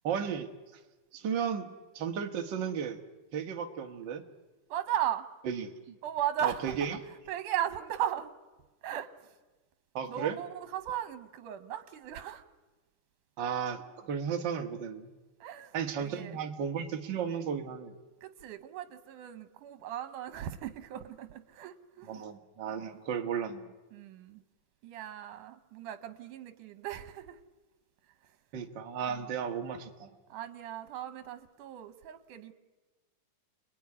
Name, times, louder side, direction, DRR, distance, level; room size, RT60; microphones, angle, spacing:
voice 1, 0.0-0.5 1.1-3.0 3.3-4.2 5.5-6.0 6.4-7.0 9.9-10.4 13.4-15.1 15.7-17.9 22.1-23.7 28.5-30.1, right 7 dB, 45° right, 4 dB, 1.8 m, -34 dB
voice 2, 4.7-5.3 6.0-6.8 7.3-8.3 8.8-9.3 10.1-12.4 15.4-16.4 18.2-22.2 22.7-23.0 23.9-24.4 24.8-27.4 29.1-29.3 30.3-32.5, right 11 dB, 85° right, 11 dB, 2.7 m, -37 dB
29.5 x 20.5 x 9.8 m, 1.2 s
omnidirectional pair, 3.6 m